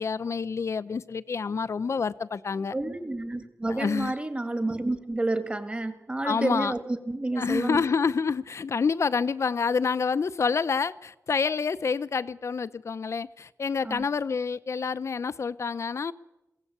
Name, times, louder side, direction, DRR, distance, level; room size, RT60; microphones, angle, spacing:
voice 1, 0.0-2.7 3.7-4.1 6.2-6.7 7.4-16.1, left 5 dB, 60° left, 0.7 m, -28 dB
voice 2, 2.7-7.8 13.8-14.0, right 2 dB, 20° right, 1.9 m, -30 dB
22.5 x 16.5 x 8.2 m
wide cardioid pair, 120°, 6 cm